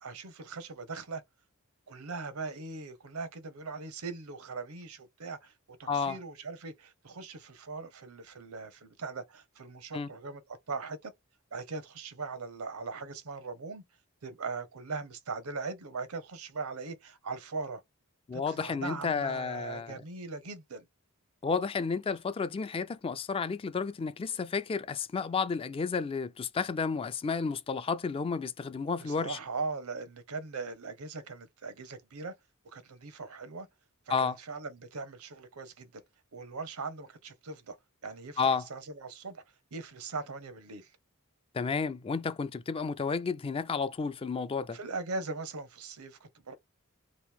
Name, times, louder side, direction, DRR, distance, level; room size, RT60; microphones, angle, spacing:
voice 1, 0.0-1.2 1.9-5.5 5.8-11.1 11.5-13.8 14.2-17.8 18.3-20.9 29.0-32.3 32.6-33.7 34.1-36.0 36.3-37.8 38.0-39.4 39.7-40.9 44.7-46.6, right 4 dB, 85° right, 0.8 m, -40 dB
voice 2, 5.9-6.2 9.9-10.1 18.3-19.9 21.4-29.4 34.1-34.4 38.4-38.6 41.5-44.8, left 5 dB, 25° left, 0.3 m, -31 dB
3.0 x 2.6 x 3.4 m
head